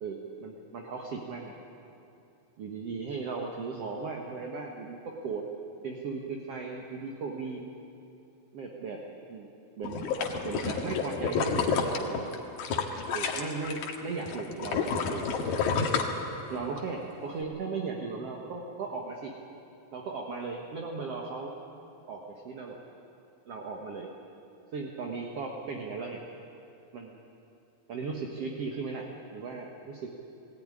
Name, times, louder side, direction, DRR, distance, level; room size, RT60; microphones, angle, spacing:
voice 1, 0.0-1.6 2.6-5.5 5.8-7.7 8.5-9.0 9.3-9.5 9.8-10.0 10.4-12.3 13.1-15.8 16.5-19.3 19.9-21.6 22.1-22.8 23.5-24.1 24.7-26.2 26.9-27.2 27.9-30.1, right 4 dB, 50° right, 1 dB, 2.1 m, -37 dB
sound 1, 9.8-14.0 14.3-16.8 17.2-17.3, left 5 dB, 80° left, 3.4 m, -29 dB
21.0 x 17.5 x 9.8 m, 2.8 s
omnidirectional pair, 4.2 m